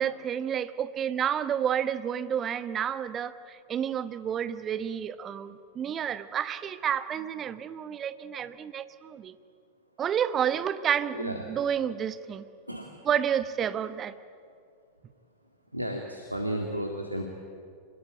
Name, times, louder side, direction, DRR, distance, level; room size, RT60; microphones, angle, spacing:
voice 1, 0.0-9.3 10.0-12.5 13.0-14.1, right 8 dB, 25° right, 13 dB, 1.1 m, -30 dB
voice 2, 15.7-17.2, equal, 85° right, 3 dB, 2.1 m, -33 dB
26.0 x 21.0 x 9.0 m, 2.3 s
figure-of-eight pair, 90°, 0 cm